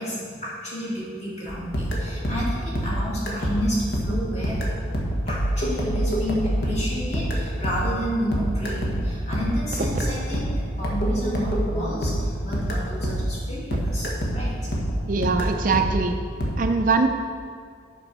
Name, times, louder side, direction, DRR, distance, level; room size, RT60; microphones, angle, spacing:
voice 1, 0.0-4.6 5.3-14.7, equal, 35° left, -6 dB, 2.6 m, -31 dB
sound 1, 1.5-13.5 13.7-16.5, equal, 55° left, 1.4 m, -26 dB
voice 2, 15.1-16.2 16.6-17.1, right 4 dB, 45° right, 5 dB, 0.5 m, -22 dB
8.4 x 6.1 x 5.5 m, 2.1 s
head